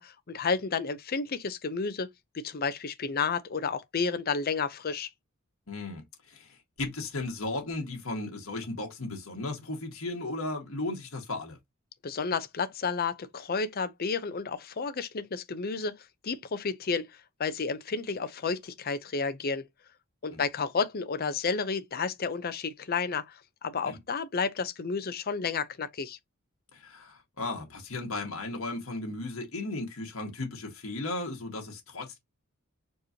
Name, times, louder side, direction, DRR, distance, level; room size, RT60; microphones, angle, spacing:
voice 1, 0.0-2.1 2.3-5.1 12.0-19.6 20.2-26.2, left 5 dB, 45° left, 0.6 m, -31 dB
voice 2, 5.7-11.6 20.3-20.4 23.8-24.0 26.7-32.2, left 2 dB, 70° left, 1.6 m, -36 dB
4.5 x 3.0 x 2.8 m
head